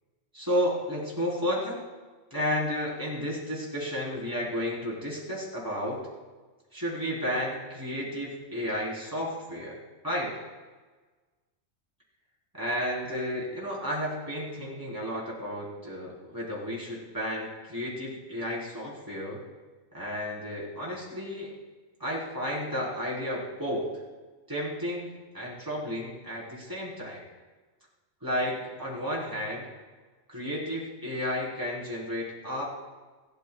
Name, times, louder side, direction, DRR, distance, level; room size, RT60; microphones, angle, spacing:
voice 1, 0.3-1.8 2.3-6.0 6.7-10.4 12.5-19.4 19.9-21.5 22.0-23.9 24.5-27.2 28.2-29.7 30.3-32.6, equal, 15° right, -5 dB, 4.1 m, -32 dB
28.5 x 12.5 x 2.4 m, 1.3 s
omnidirectional pair, 1.2 m